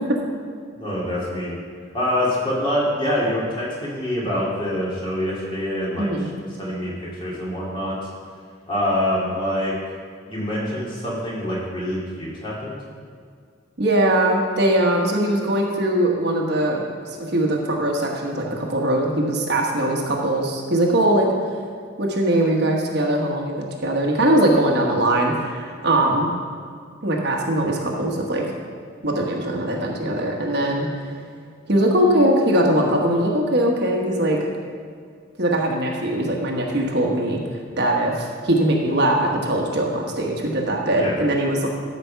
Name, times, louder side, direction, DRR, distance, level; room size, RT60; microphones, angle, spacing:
voice 1, 0.8-1.6 1.9-6.3 6.6-8.0 8.7-9.7 10.3-12.8 41.0-41.2, left 1 dB, 25° left, -6 dB, 2.5 m, -25 dB
voice 2, 6.0-6.3 13.8-16.9 17.2-21.3 22.0-26.3 27.0-28.4 29.0-30.9 31.7-34.4 35.4-37.4 37.8-41.7, right 1 dB, 55° right, 0 dB, 1.2 m, -21 dB
12.5 x 5.2 x 5.7 m, 2.1 s
head